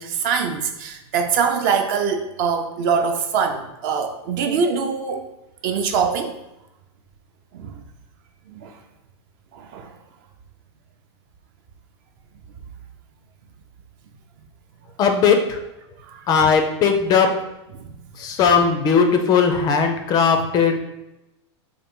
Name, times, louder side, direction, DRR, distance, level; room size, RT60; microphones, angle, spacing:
voice 1, 0.0-5.2 5.6-6.3 7.5-7.8 8.5-8.7 9.5-10.0 16.1-16.3 17.7-17.8 18.6-18.8, right 6 dB, 45° right, 5 dB, 0.5 m, -23 dB
voice 2, 15.0-15.6 16.3-17.3 18.2-20.8, left 6 dB, 25° left, 5 dB, 0.4 m, -18 dB
3.9 x 2.5 x 3.6 m, 0.93 s
supercardioid pair, 140°, 15 cm